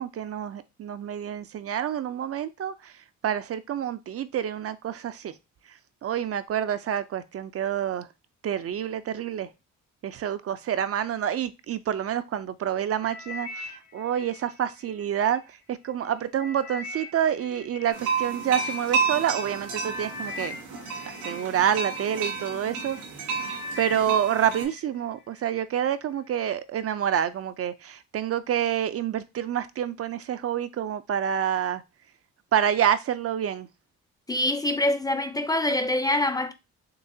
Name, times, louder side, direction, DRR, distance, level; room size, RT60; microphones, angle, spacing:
voice 1, 0.0-2.9 3.2-5.3 6.0-8.1 8.4-9.5 10.0-15.4 15.7-20.6 21.1-23.0 23.8-31.8 32.5-33.7, right 9 dB, 50° right, 0.5 m, -28 dB
sound 1, 13.0-15.4 15.9-18.7 19.4-19.6 19.8-22.2 22.7-23.0 23.3-24.8 25.2-25.7 26.3-26.4, left 3 dB, 65° left, 2.2 m, -41 dB
sound 2, 17.9-24.6, right 5 dB, 85° right, 2.4 m, -31 dB
voice 2, 34.3-36.5, left 1 dB, 10° left, 0.6 m, -25 dB
6.7 x 2.4 x 2.7 m
cardioid pair, 90°, 30 cm